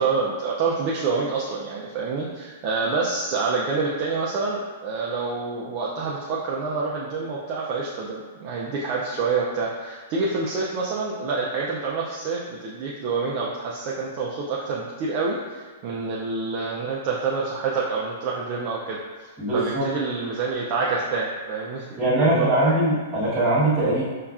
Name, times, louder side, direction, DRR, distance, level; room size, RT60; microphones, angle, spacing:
voice 1, 0.0-19.0 19.5-22.8, right 4 dB, 25° right, -5 dB, 0.3 m, -27 dB
voice 2, 19.4-19.9 22.0-24.0, right 1 dB, 5° right, -13 dB, 1.0 m, -21 dB
5.4 x 2.3 x 2.3 m, 1.4 s
hypercardioid pair, 180°, 0 cm